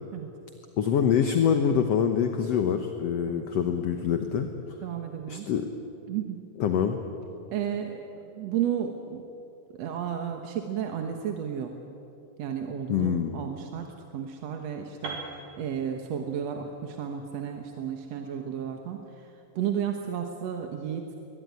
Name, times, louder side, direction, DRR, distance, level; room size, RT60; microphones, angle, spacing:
voice 1, 0.8-4.5 5.3-5.7 6.6-7.0 12.9-13.4, left 8 dB, 60° left, 6 dB, 2.0 m, -25 dB
voice 2, 4.8-5.5 6.1-6.5 7.5-9.3 9.7-11.7 12.4-19.3 19.6-21.1, right 8 dB, 60° right, 4 dB, 2.2 m, -33 dB
Piano, 15.0-19.0, right 3 dB, 80° right, 4.2 m, -43 dB
22.0 x 20.5 x 9.6 m, 2.7 s
omnidirectional pair, 3.6 m